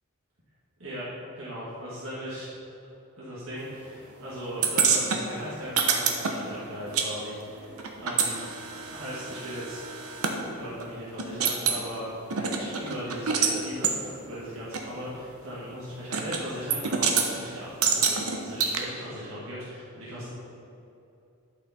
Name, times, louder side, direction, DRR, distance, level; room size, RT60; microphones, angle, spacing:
voice 1, 1.4-2.5 3.2-8.4 8.9-9.8 10.5-20.3, equal, 65° right, -8 dB, 2.0 m, -38 dB
sound 1, 4.6-7.1 7.3-10.4 10.8-10.9 11.2-11.8 12.3-13.6 13.8-14.0 14.7-14.8 16.1-16.4 16.7-17.3 17.8-18.8, right 6 dB, 80° right, 0.9 m, -26 dB
11.5 x 5.7 x 4.3 m, 2.7 s
head